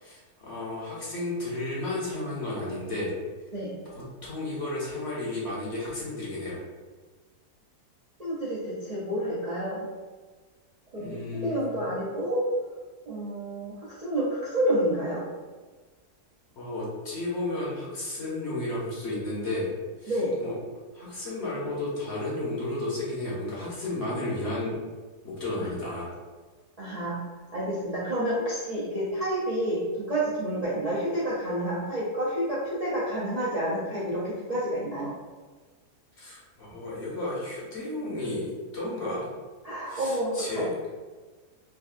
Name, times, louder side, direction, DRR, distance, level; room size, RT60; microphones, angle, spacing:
voice 1, 0.0-3.1 3.8-6.6 11.0-11.6 16.6-19.7 20.0-20.1 20.4-20.5 20.9-24.8 25.2-26.1 36.2-39.2 39.9-40.7, left 2 dB, 50° left, -6 dB, 1.0 m, -33 dB
voice 2, 8.2-9.8 10.9-11.1 11.4-12.4 13.1-13.7 14.0-15.2 20.1-20.4 25.6-25.7 26.8-27.2 27.5-35.1 39.6-40.6, right 1 dB, 80° right, -9 dB, 0.3 m, -29 dB
3.7 x 2.5 x 2.4 m, 1.3 s
omnidirectional pair, 1.7 m